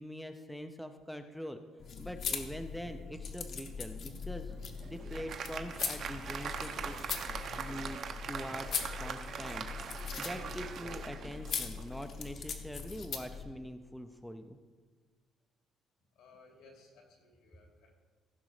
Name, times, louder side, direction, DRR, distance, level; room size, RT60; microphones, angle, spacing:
voice 1, 0.0-1.6 2.0-4.5 4.8-7.2 7.6-9.6 9.9-14.6, equal, ahead, 7 dB, 0.4 m, -44 dB
sound 1, 1.8-13.4, left 6 dB, 45° left, 0.9 m, -41 dB
Applause, 4.5-12.0, right 6 dB, 45° right, 0.7 m, -42 dB
voice 2, 16.1-17.9, left 3 dB, 80° left, 0 dB, 3.1 m, -59 dB
15.0 x 6.1 x 4.8 m, 1.5 s
cardioid pair, 170°, 0 cm